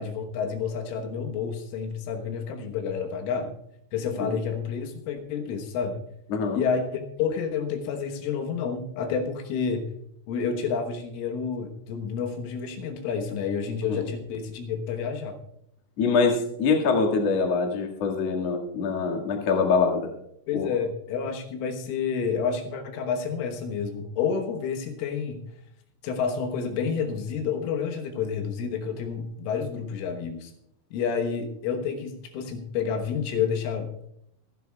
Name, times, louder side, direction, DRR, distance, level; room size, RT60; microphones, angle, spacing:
voice 1, 0.0-3.5 3.9-6.0 6.5-9.9 10.3-15.4 20.5-25.4 26.0-30.5 30.9-34.1, left 6 dB, 75° left, 4 dB, 3.7 m, -29 dB
voice 2, 16.0-20.1 20.5-20.7, left 4 dB, 50° left, 1 dB, 2.0 m, -24 dB
26.5 x 11.0 x 2.3 m, 0.74 s
omnidirectional pair, 5.8 m